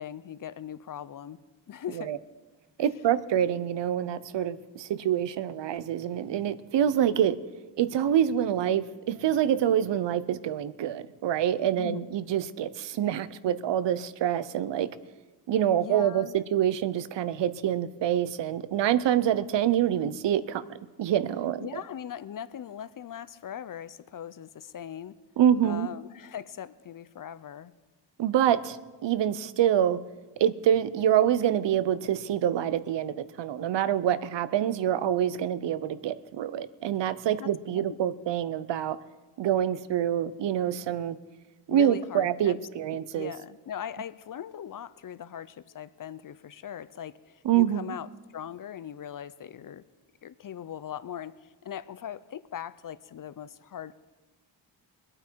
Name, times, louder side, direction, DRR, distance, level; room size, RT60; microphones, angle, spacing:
voice 1, 0.0-1.4 1.7-2.1 11.8-12.1 15.8-16.4 21.6-25.2 25.6-27.7 37.4-38.0 41.7-42.6 43.1-48.1 48.3-49.8 50.2-54.0, left 9 dB, 50° left, 16 dB, 0.6 m, -40 dB
voice 2, 2.8-7.4 7.8-14.9 15.5-20.6 21.0-21.7 25.4-25.9 28.2-30.0 30.4-39.0 39.4-41.2 41.7-43.3 47.4-47.8, right 10 dB, 75° right, 16 dB, 0.7 m, -26 dB
23.5 x 8.9 x 4.6 m, 1.2 s
cardioid pair, 100°, 43 cm